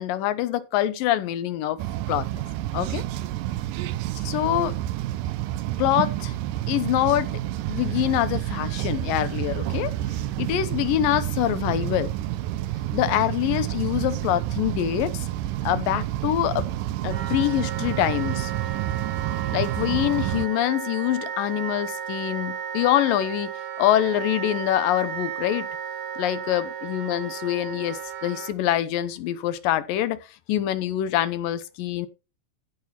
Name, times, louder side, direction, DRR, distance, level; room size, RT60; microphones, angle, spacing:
voice 1, 0.0-1.8 2.1-2.3 2.7-3.0 4.2-4.8 5.8-6.3 6.7-7.4 7.7-9.9 10.4-12.1 12.9-15.3 15.6-16.7 17.0-18.5 19.5-23.5 23.8-25.7 26.2-30.2 30.5-32.1, left 13 dB, 85° left, 2.6 m, -25 dB
sound 1, 1.8-20.5, right 14 dB, 85° right, 2.3 m, -29 dB
Wind instrument woodwind instrument, 17.1-28.5, right 8 dB, 60° right, 2.4 m, -34 dB
15.5 x 5.8 x 4.3 m
omnidirectional pair, 3.9 m